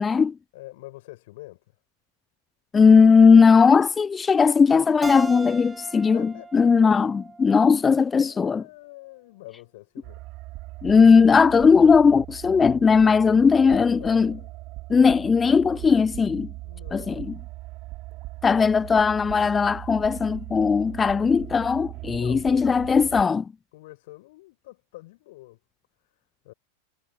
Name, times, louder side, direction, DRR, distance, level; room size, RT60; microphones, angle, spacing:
voice 1, 0.0-0.3 2.7-8.6 10.8-14.3 14.9-16.5 16.9-17.3 18.4-23.4, left 5 dB, 15° left, 0.5 m, -18 dB
voice 2, 0.5-1.7 5.8-7.1 8.2-10.2 13.0-14.5 16.6-17.2 22.1-23.2 23.7-25.6 26.0-26.1 26.4-26.5, left 19 dB, 50° left, 7.9 m, -45 dB
Keyboard (musical), 5.0-8.3, right 4 dB, 10° right, 4.6 m, -39 dB
sound 1, 10.0-23.2, right 20 dB, 40° right, 3.0 m, -40 dB
figure-of-eight pair, 90°, 0 cm